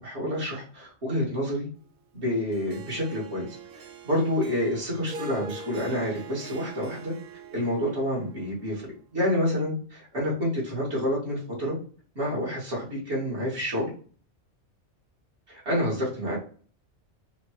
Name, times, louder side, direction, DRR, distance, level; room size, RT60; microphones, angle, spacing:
voice 1, 0.0-1.7 2.1-3.5 4.0-7.1 7.5-8.9 9.1-11.8 12.2-13.9 15.5-16.4, left 1 dB, 75° right, -5 dB, 2.3 m, -28 dB
Harp, 2.5-8.9, right 4 dB, 60° right, 0.7 m, -44 dB
5.5 x 2.4 x 3.0 m, 0.42 s
omnidirectional pair, 1.1 m